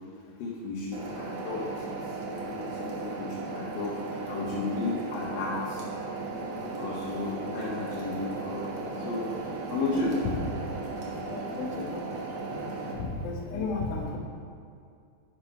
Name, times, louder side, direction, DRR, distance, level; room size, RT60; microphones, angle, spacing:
voice 1, 0.4-2.2 2.5-5.8 6.8-10.2, left 3 dB, 90° left, -6 dB, 2.8 m, -34 dB
sound 1, 0.9-12.9, right 3 dB, 60° right, 2.2 m, -36 dB
voice 2, 11.2-12.6 13.0-14.2, left 3 dB, 70° left, 0 dB, 2.4 m, -34 dB
8.2 x 6.0 x 4.9 m, 2.4 s
omnidirectional pair, 3.8 m